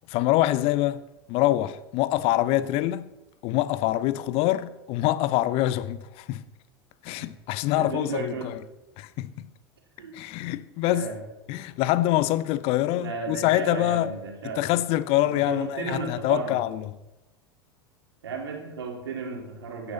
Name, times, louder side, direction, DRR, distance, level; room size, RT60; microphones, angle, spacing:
voice 1, 0.1-1.0 1.3-3.1 3.4-6.4 7.0-8.6 9.0-9.5 10.1-11.1 11.5-14.1 14.4-16.9, left 15 dB, 45° left, 0.7 m, -25 dB
voice 2, 7.8-8.6 10.0-10.2 10.9-11.2 13.0-14.7 15.2-16.6 18.2-19.9, right 4 dB, 75° right, 2.8 m, -34 dB
16.0 x 9.9 x 4.2 m
figure-of-eight pair, 80°, 13 cm